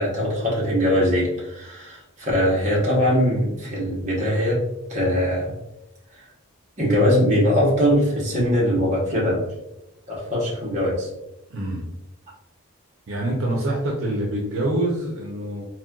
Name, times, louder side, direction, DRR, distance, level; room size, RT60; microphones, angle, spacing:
voice 1, 0.0-4.6 4.9-5.5 6.2-6.3 6.8-9.5 10.1-11.1, equal, 30° right, -5 dB, 0.9 m, -21 dB
voice 2, 11.5-11.9 13.1-15.6, right 1 dB, 65° right, -2 dB, 0.6 m, -25 dB
4.1 x 2.2 x 2.3 m, 0.90 s
head